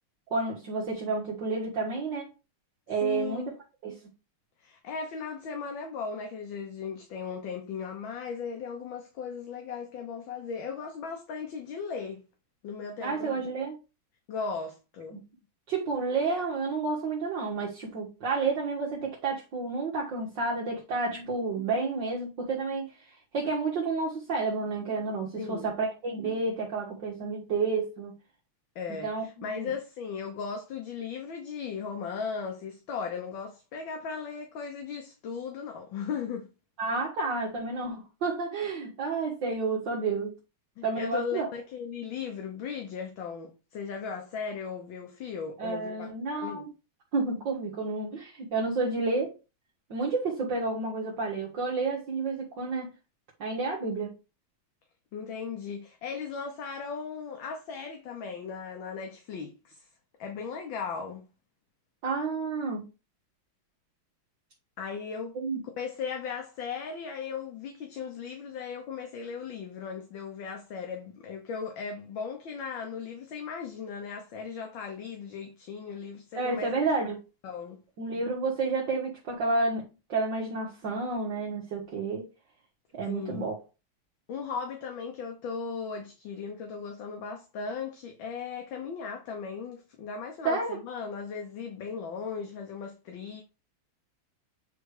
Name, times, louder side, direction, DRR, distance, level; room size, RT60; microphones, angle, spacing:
voice 1, 0.3-2.3 2.9-3.4 3.8-4.0 13.0-13.8 15.1-15.2 15.7-22.9 23.3-28.1 29.0-29.7 36.8-40.4 40.8-41.5 45.6-46.7 47.1-49.4 49.9-52.9 53.4-54.1 62.0-62.8 65.4-65.6 76.4-77.2 78.0-82.3 82.9-83.6 90.4-90.8, right 3 dB, 60° right, 2.1 m, -30 dB
voice 2, 3.0-3.6 4.6-12.2 12.6-13.5 14.3-15.2 25.4-25.7 28.7-36.5 40.8-46.1 46.4-46.7 55.1-59.9 60.2-61.3 64.8-65.4 65.8-76.7 77.4-77.8 83.0-83.5 84.3-93.4, left 6 dB, 65° left, 1.7 m, -37 dB
9.0 x 3.3 x 4.9 m
omnidirectional pair, 2.4 m